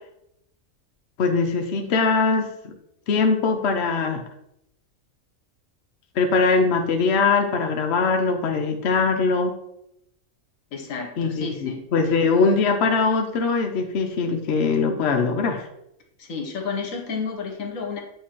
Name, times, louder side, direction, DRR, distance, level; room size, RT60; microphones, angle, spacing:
voice 1, 1.2-2.7 3.1-4.2 6.2-9.5 11.2-15.7, left 4 dB, 60° left, 4 dB, 0.9 m, -21 dB
voice 2, 10.7-11.8 16.2-18.0, left 5 dB, 75° left, 3 dB, 1.4 m, -31 dB
8.3 x 2.8 x 4.4 m, 0.80 s
omnidirectional pair, 1.4 m